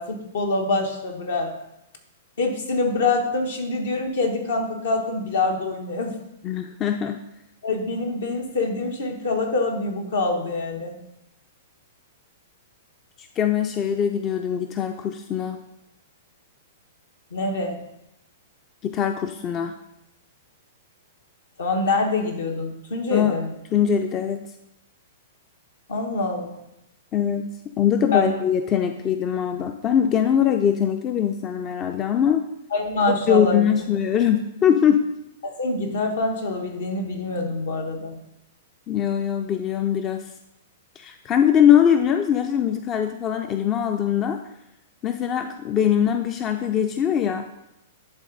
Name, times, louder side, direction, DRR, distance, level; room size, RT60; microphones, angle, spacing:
voice 1, 0.0-1.5 2.4-6.2 7.6-10.9 17.3-17.8 21.6-23.5 25.9-26.6 28.1-28.3 32.7-33.6 35.4-38.2, left 3 dB, 75° left, 3 dB, 1.3 m, -25 dB
voice 2, 6.4-7.2 13.2-15.6 18.8-19.7 23.1-23.4 23.7-24.5 27.1-27.5 27.8-32.5 33.1-35.1 38.9-40.3 41.0-44.4 45.0-47.5, left 9 dB, 30° left, 7 dB, 0.4 m, -22 dB
10.5 x 3.6 x 3.9 m, 0.87 s
hypercardioid pair, 115°, 0 cm